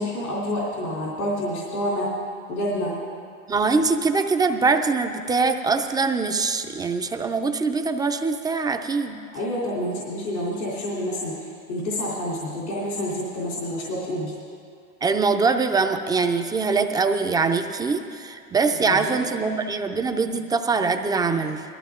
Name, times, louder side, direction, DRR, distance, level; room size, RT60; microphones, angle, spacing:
voice 1, 0.0-2.1 2.5-2.9 9.3-14.3 18.8-19.2, left 1 dB, 85° left, -6 dB, 3.4 m, -28 dB
voice 2, 3.5-9.2 15.0-21.6, right 4 dB, 10° right, 6 dB, 0.4 m, -23 dB
19.5 x 14.0 x 3.7 m, 2.3 s
hypercardioid pair, 120°, 43 cm